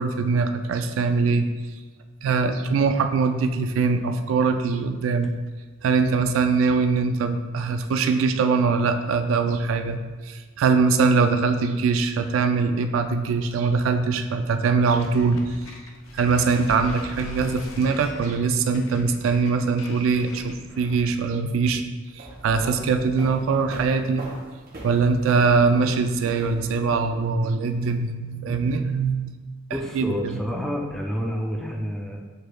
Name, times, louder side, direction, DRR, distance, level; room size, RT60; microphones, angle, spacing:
voice 1, 0.0-1.5 2.2-5.3 5.8-10.0 10.3-15.4 16.1-21.8 22.2-24.2 24.8-29.3 30.0-30.1, right 4 dB, 80° right, 8 dB, 0.3 m, -22 dB
sound 1, 14.9-21.2, left 2 dB, 85° left, 0.5 m, -41 dB
sound 2, 22.0-26.9, right 2 dB, 45° right, 0.7 m, -41 dB
voice 2, 29.7-32.2, equal, ahead, 0 dB, 0.3 m, -29 dB
6.5 x 3.1 x 2.2 m, 1.3 s
head